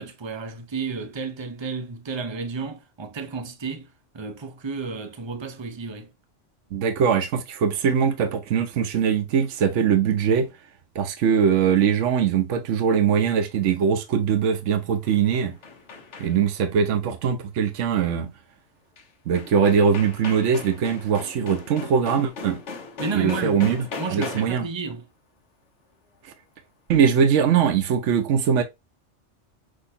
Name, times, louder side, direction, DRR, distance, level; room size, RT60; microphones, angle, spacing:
voice 1, 0.0-3.9 4.1-6.1 23.0-25.0, right 4 dB, 25° right, 0.7 m, -32 dB
voice 2, 6.7-10.5 10.9-15.5 16.2-18.3 19.3-22.6 23.1-23.8 24.1-24.7 26.9-28.6, right 7 dB, 75° right, 1.1 m, -21 dB
sound 1, 14.8-16.6 19.0-19.1 19.3-24.7, left 4 dB, 70° left, 1.3 m, -38 dB
6.3 x 2.7 x 2.7 m
omnidirectional pair, 1.3 m